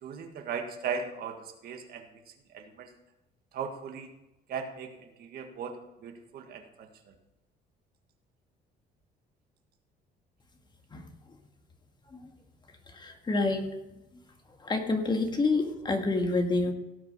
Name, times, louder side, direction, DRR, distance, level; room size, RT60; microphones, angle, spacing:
voice 1, 0.0-2.9 3.5-4.1 4.5-5.8 6.0-7.1, right 6 dB, 65° right, 5 dB, 1.7 m, -38 dB
voice 2, 12.9-13.7 14.6-16.7, left 3 dB, 25° left, 5 dB, 1.7 m, -27 dB
17.0 x 5.9 x 5.3 m, 0.95 s
cardioid pair, 110°, 17 cm